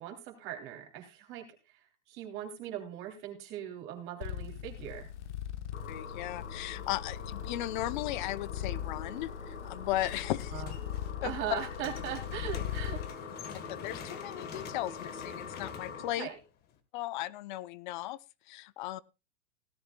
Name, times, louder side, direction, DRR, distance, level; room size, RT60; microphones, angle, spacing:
voice 1, 0.0-1.5 2.1-5.1 10.5-10.7 11.2-13.0 16.2-16.4, right 9 dB, 35° right, 3 dB, 3.1 m, -39 dB
sound 1, 4.2-13.1, left 10 dB, 70° left, 1.2 m, -40 dB
sound 2, 5.7-16.1, left 5 dB, 85° left, 6.9 m, -45 dB
voice 2, 5.9-10.6 11.2-11.3 13.7-16.3 16.9-18.2 18.5-19.0, left 15 dB, 40° left, 19 dB, 0.7 m, -36 dB
sound 3, 10.0-11.1 11.4-16.8, left 8 dB, 25° left, 1.4 m, -47 dB
17.5 x 13.0 x 2.3 m, 0.27 s
supercardioid pair, 155°, 36 cm